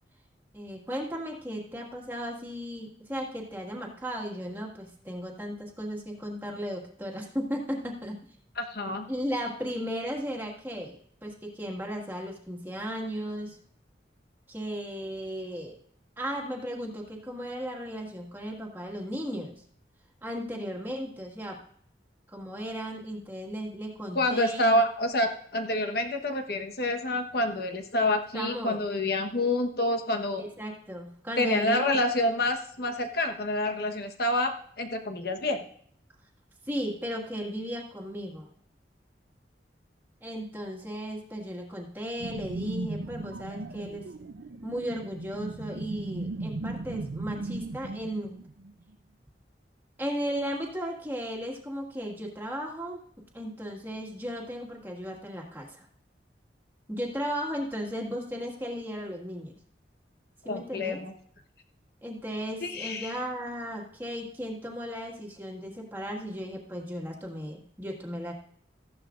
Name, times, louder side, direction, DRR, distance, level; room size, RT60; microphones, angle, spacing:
voice 1, 0.5-8.2 9.1-13.6 14.5-15.8 16.2-19.6 20.2-21.6 22.3-24.8 28.3-28.8 30.3-31.9 36.7-38.5 40.2-44.0 44.6-48.4 50.0-53.0 53.3-55.9 56.9-59.6 60.4-61.0 62.0-68.3, equal, 10° right, -1 dB, 1.9 m, -35 dB
voice 2, 8.6-9.1 24.1-30.4 31.4-35.6 60.4-61.1 62.6-63.2, left 1 dB, 60° left, 5 dB, 1.2 m, -28 dB
sound 1, 42.2-48.9, right 2 dB, 75° right, 0.6 m, -37 dB
14.5 x 11.0 x 2.5 m, 0.62 s
head